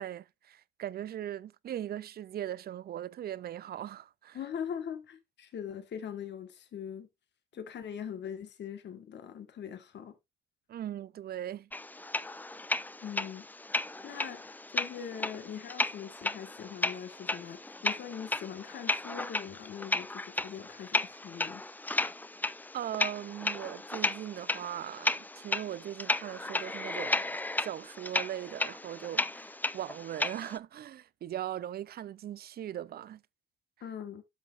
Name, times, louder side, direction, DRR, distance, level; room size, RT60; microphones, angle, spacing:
voice 1, 0.0-4.4 10.7-11.7 12.0-12.1 22.7-33.2, right 11 dB, 50° right, 0.5 m, -39 dB
voice 2, 4.3-7.1 7.5-10.2 13.0-21.6 33.8-34.2, left 8 dB, 60° left, 1.5 m, -42 dB
sound 1, 11.7-30.6, left 2 dB, 10° left, 0.5 m, -34 dB
12.0 x 6.2 x 2.5 m
cardioid pair, 90°, 20 cm